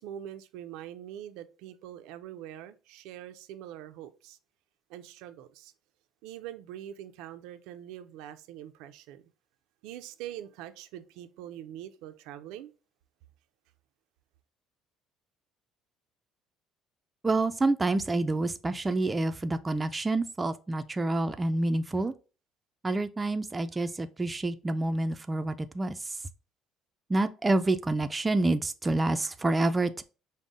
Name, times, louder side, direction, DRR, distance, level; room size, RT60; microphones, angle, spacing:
voice 1, 0.0-4.4 4.9-5.7 6.2-9.3 9.8-12.7, right 11 dB, 90° right, 0.4 m, -43 dB
voice 2, 17.2-22.1 22.8-26.2 27.1-30.0, right 2 dB, 15° right, 0.3 m, -28 dB
5.3 x 2.1 x 3.6 m
cardioid pair, 135°, 0 cm